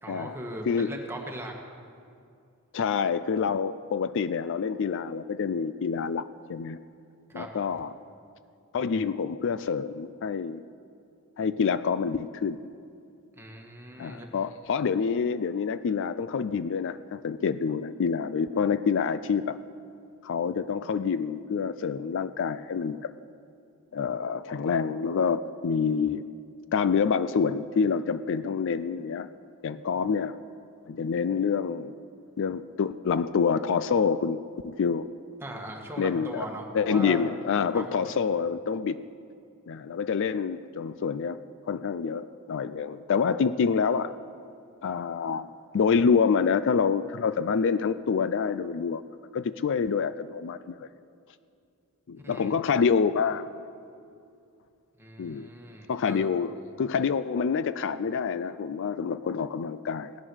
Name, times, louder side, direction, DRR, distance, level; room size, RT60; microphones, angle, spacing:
voice 1, 0.0-1.5 7.3-7.7 13.3-14.3 35.4-37.2 37.7-38.1 52.2-52.5 55.0-56.3, right 1 dB, 10° right, 0 dB, 1.7 m, -39 dB
voice 2, 2.7-6.2 6.5-6.8 7.3-7.9 8.7-10.6 11.4-12.7 14.0-19.6 20.2-23.1 23.9-26.2 26.7-29.3 29.6-30.4 30.9-31.9 32.4-35.1 36.0-36.4 36.7-39.0 39.7-41.4 41.7-44.1 44.8-49.0 49.3-50.9 52.1-53.5 55.2-55.5 55.9-60.1, left 6 dB, 60° left, 14 dB, 0.4 m, -27 dB
17.5 x 11.0 x 6.3 m, 2.4 s
head